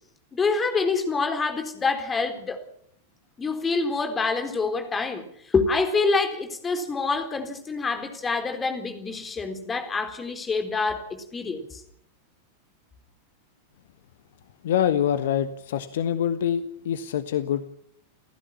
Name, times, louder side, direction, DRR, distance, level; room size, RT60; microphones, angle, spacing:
voice 1, 0.3-2.7 3.4-11.8, left 4 dB, 20° left, 7 dB, 4.0 m, -26 dB
voice 2, 14.6-17.7, left 9 dB, 60° left, 11 dB, 1.3 m, -25 dB
30.0 x 15.0 x 7.2 m, 0.68 s
figure-of-eight pair, 90°, 0 cm